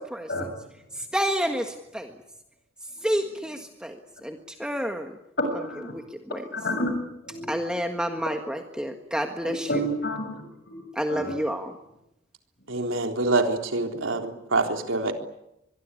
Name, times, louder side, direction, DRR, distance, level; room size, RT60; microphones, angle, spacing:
voice 1, 0.1-0.5 0.9-2.1 3.0-5.1 5.5-6.4 7.5-9.8 10.9-11.7, equal, 5° right, 4 dB, 1.6 m, -30 dB
voice 2, 5.6-5.9 6.5-7.0 7.2-7.6 9.4-10.4 10.7-11.3, equal, 50° left, 7 dB, 7.5 m, -30 dB
voice 3, 12.7-15.1, right 2 dB, 80° right, 4 dB, 3.7 m, -25 dB
25.0 x 22.0 x 9.9 m, 0.84 s
head